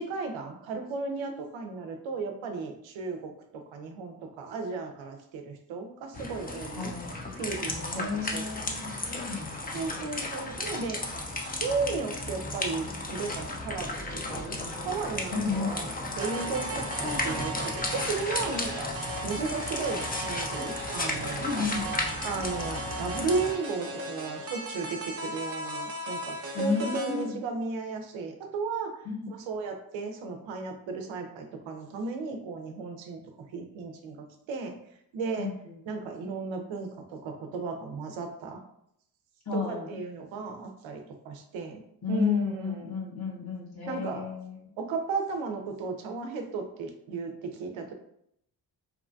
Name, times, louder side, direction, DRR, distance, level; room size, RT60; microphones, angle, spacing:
voice 1, 0.0-6.9 7.4-8.5 9.7-11.0 11.4-13.9 14.3-14.6 14.8-15.9 16.2-18.9 19.2-21.7 22.2-28.9 29.3-33.2 33.5-34.7 35.1-35.5 35.9-38.6 39.5-42.7 43.9-44.3 44.8-47.9, right 4 dB, 75° right, 4 dB, 0.7 m, -35 dB
sound 1, 6.1-23.5, left 2 dB, 20° left, 0.6 m, -34 dB
voice 2, 6.8-7.1 7.6-10.0 15.3-15.9 21.4-21.9 26.5-27.4 29.0-29.3 35.4-35.8 39.5-40.0 42.0-44.7, left 5 dB, 50° left, -2 dB, 1.1 m, -32 dB
sound 2, 16.2-27.2, right 1 dB, 30° right, 0.7 m, -37 dB
2.9 x 2.2 x 2.5 m, 0.73 s
supercardioid pair, 50°, 47 cm